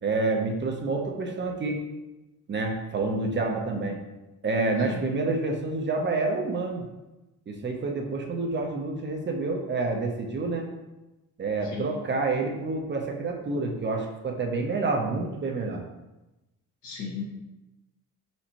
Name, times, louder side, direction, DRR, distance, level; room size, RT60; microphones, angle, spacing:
voice 1, 0.0-1.8 2.5-4.0 4.4-6.8 7.5-10.6 11.4-15.8, right 3 dB, 35° right, 2 dB, 0.7 m, -28 dB
voice 2, 16.8-17.2, left 5 dB, 75° left, -3 dB, 1.5 m, -34 dB
4.3 x 4.1 x 2.9 m, 1.0 s
cardioid pair, 90°, 30 cm